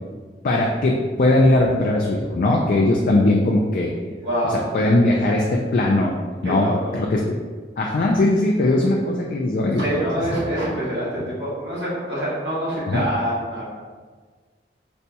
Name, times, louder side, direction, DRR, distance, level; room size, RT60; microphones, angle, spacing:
voice 1, 0.4-3.9 4.4-5.4 5.7-6.1 6.4-7.2 7.8-10.0 12.9-13.0, left 2 dB, 50° left, -1 dB, 0.3 m, -19 dB
voice 2, 4.2-4.6 6.4-6.9 9.8-13.6, equal, 80° right, -8 dB, 1.4 m, -25 dB
4.1 x 2.2 x 2.7 m, 1.4 s
head